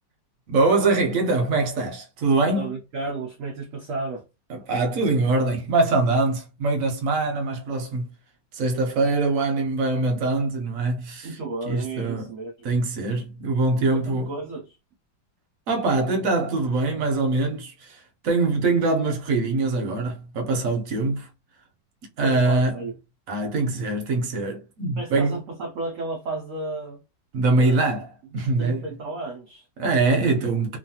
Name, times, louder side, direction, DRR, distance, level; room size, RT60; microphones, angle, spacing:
voice 1, 0.5-2.7 4.5-8.1 8.5-11.3 11.7-12.3 12.6-14.3 15.7-21.3 22.2-22.8 23.3-25.4 27.3-28.8 29.8-30.8, right 3 dB, 60° right, 0.9 m, -23 dB
voice 2, 2.5-4.2 11.2-12.7 13.9-14.8 22.2-23.0 25.0-27.0 27.5-27.8 28.3-29.6, right 3 dB, 90° right, 0.6 m, -33 dB
3.1 x 2.2 x 2.7 m
omnidirectional pair, 2.0 m